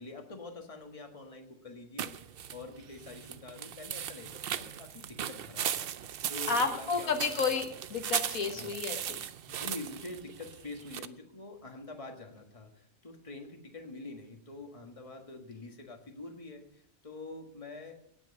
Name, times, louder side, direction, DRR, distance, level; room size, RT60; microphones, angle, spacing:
voice 1, 0.0-2.1 2.5-5.9 6.3-7.2 8.5-8.7 9.5-18.0, left 2 dB, 25° left, 3 dB, 1.6 m, -46 dB
sound 1, 2.0-11.1, right 9 dB, 60° right, 0.6 m, -38 dB
voice 2, 6.5-7.6 7.9-9.2, left 5 dB, 80° left, 5 dB, 1.8 m, -31 dB
17.5 x 6.3 x 6.9 m, 0.72 s
omnidirectional pair, 1.4 m